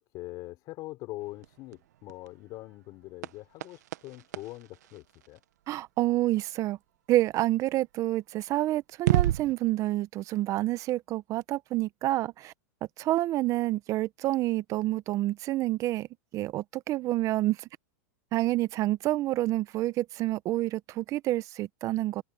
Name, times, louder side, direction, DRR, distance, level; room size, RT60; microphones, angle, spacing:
voice 1, 0.0-5.4, left 19 dB, 45° left, 5.0 m, -43 dB
sound 1, 1.2-5.9 8.1-8.2 8.9-9.5, right 13 dB, 75° right, 0.9 m, -32 dB
voice 2, 5.7-6.8 7.1-12.5 13.0-16.1 16.3-17.6 18.3-22.2, right 16 dB, 35° right, 1.0 m, -28 dB
hypercardioid pair, 130°, 9 cm